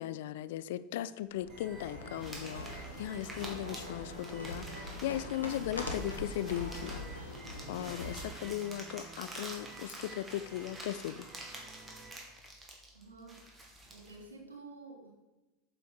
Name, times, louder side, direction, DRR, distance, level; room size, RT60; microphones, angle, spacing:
voice 1, 0.0-7.0 7.7-11.3, left 13 dB, 65° left, 15 dB, 0.4 m, -38 dB
sound 1, 1.3-8.5, left 1 dB, 85° left, 1.4 m, -43 dB
sound 2, 1.5-12.2, right 4 dB, 40° right, 1.5 m, -53 dB
sound 3, 2.2-14.2, right 1 dB, 20° right, 2.3 m, -48 dB
voice 2, 12.4-13.4 13.8-15.1, right 3 dB, 85° right, -2 dB, 3.0 m, -51 dB
8.4 x 7.0 x 4.7 m, 1.1 s
figure-of-eight pair, 80°, 0 cm